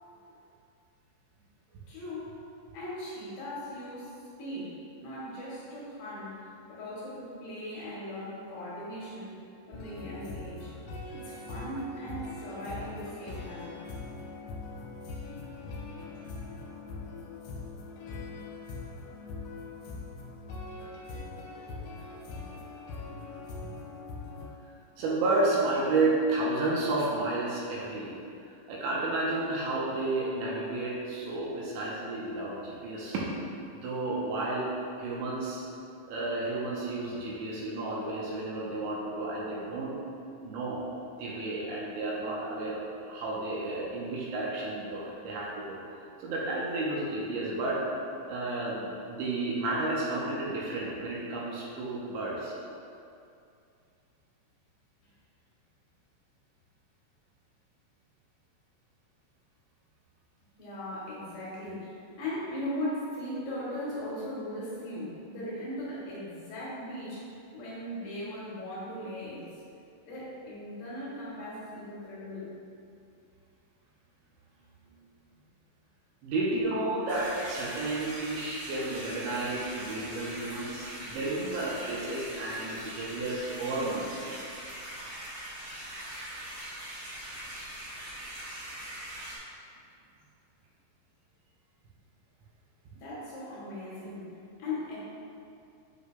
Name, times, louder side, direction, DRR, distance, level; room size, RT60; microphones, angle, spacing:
voice 1, 1.9-2.4 2.7-9.4 9.7-10.7 11.1-13.8 60.6-69.6 70.0-72.5 92.9-94.3 94.6-95.0, left 1 dB, 70° left, -8 dB, 3.0 m, -38 dB
sound 1, 9.7-24.5, left 3 dB, 85° left, 3.0 m, -42 dB
voice 2, 25.0-28.2 28.7-33.3 33.7-34.7 35.0-35.6 36.1-39.9 40.4-40.9 41.2-45.8 46.2-47.8 48.3-52.6 76.2-84.3, right 2 dB, 80° right, -5 dB, 3.0 m, -31 dB
sound 2, 77.1-89.4, right 1 dB, 60° right, 2.5 m, -42 dB
7.9 x 5.4 x 2.3 m, 2.5 s
omnidirectional pair, 5.4 m